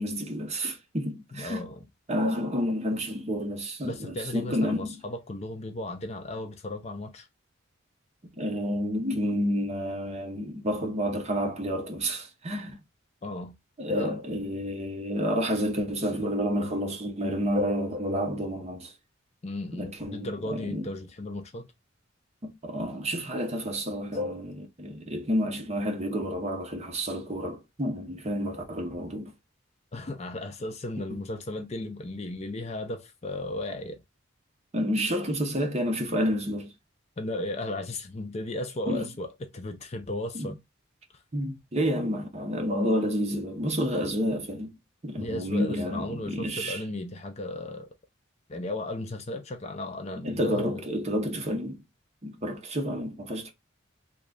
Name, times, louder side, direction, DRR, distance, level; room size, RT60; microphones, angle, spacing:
voice 1, 0.0-1.6 2.1-5.0 8.4-12.8 13.8-18.9 19.7-20.9 22.4-29.3 31.1-31.2 34.7-36.7 38.9-39.1 40.3-40.5 41.3-44.7 45.0-46.8 50.2-51.8 52.2-53.5, equal, 30° right, 0.7 m, -30 dB
voice 2, 1.3-1.9 3.8-7.3 13.2-13.5 13.9-14.2 19.4-21.7 29.9-34.0 37.2-39.3 39.5-40.6 41.1-41.2 45.2-47.9 48.5-50.8, left 1 dB, 30° left, 0.4 m, -35 dB
3.1 x 2.3 x 3.7 m
head